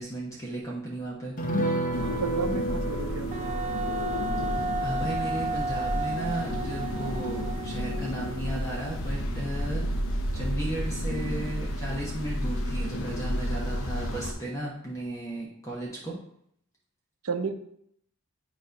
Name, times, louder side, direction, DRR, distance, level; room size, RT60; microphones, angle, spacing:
voice 1, 0.0-1.3 4.8-9.8 10.3-16.2, right 1 dB, 15° left, -4 dB, 1.1 m, -35 dB
sound 1, 1.4-8.2 8.5-8.6 8.9-9.1, right 1 dB, 35° left, 0.9 m, -34 dB
sound 2, 1.9-14.3, equal, 70° left, 0.9 m, -32 dB
voice 2, 2.2-3.3 17.2-17.5, right 4 dB, 80° right, 7 dB, 0.7 m, -31 dB
Wind instrument woodwind instrument, 3.3-8.8, right 2 dB, 30° right, 0.3 m, -33 dB
9.2 x 3.1 x 5.3 m, 0.70 s
head